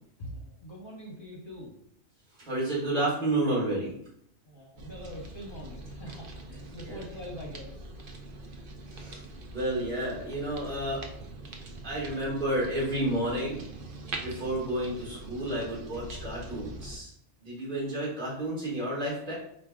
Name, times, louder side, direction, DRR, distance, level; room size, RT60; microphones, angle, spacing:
voice 1, 0.2-1.7 4.4-7.9, equal, 45° left, -3 dB, 0.9 m, -43 dB
voice 2, 2.4-3.9 6.9-7.0 8.9-9.2 9.5-11.0 11.8-13.6 14.2-17.1 17.4-19.3, right 1 dB, 35° right, -7 dB, 1.8 m, -31 dB
sound 1, 4.8-17.0, right 2 dB, 55° right, 0.6 m, -43 dB
4.5 x 2.6 x 3.5 m, 0.70 s
omnidirectional pair, 1.3 m